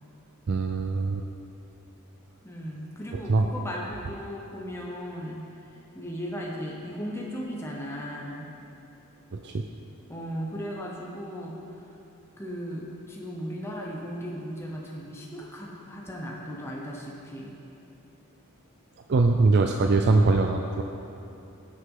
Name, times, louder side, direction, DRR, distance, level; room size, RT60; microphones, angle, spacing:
voice 1, 0.5-1.2 3.1-3.5 9.3-9.7 19.1-20.8, right 3 dB, 50° right, 3 dB, 0.4 m, -22 dB
voice 2, 2.4-8.5 10.1-11.9 12.4-17.6, equal, 10° left, -3 dB, 0.9 m, -37 dB
16.0 x 6.1 x 3.8 m, 2.9 s
head